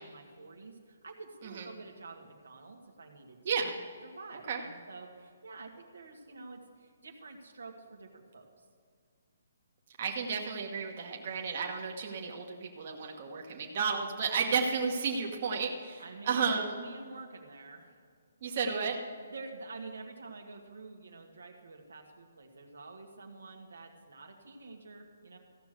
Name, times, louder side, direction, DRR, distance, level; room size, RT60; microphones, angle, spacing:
voice 1, 0.0-3.7 4.0-8.6 16.0-18.0 19.3-25.4, right 3 dB, 85° right, 2 dB, 1.7 m, -48 dB
voice 2, 10.0-16.8 18.4-19.0, right 5 dB, 45° right, 1 dB, 1.3 m, -32 dB
15.0 x 6.0 x 6.6 m, 2.1 s
hypercardioid pair, 150°, 0 cm